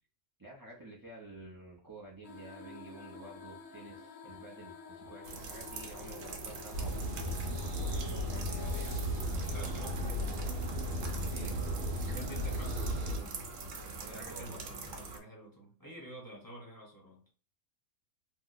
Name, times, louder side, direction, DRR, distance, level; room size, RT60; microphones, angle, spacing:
voice 1, 0.4-7.0 7.8-9.6 10.0-10.4 11.3-11.6 14.0-14.6, right 2 dB, 25° right, -5 dB, 0.4 m, -51 dB
sound 1, 2.2-9.3, left 4 dB, 75° left, 1.1 m, -49 dB
sound 2, 5.2-15.2, right 4 dB, 75° right, 1.0 m, -44 dB
sound 3, 6.7-13.2, equal, 45° right, 0.9 m, -35 dB
voice 2, 9.3-10.5 11.9-13.4 14.1-17.2, right 1 dB, 20° left, -3 dB, 0.8 m, -49 dB
2.9 x 2.0 x 3.8 m, 0.39 s
omnidirectional pair, 1.4 m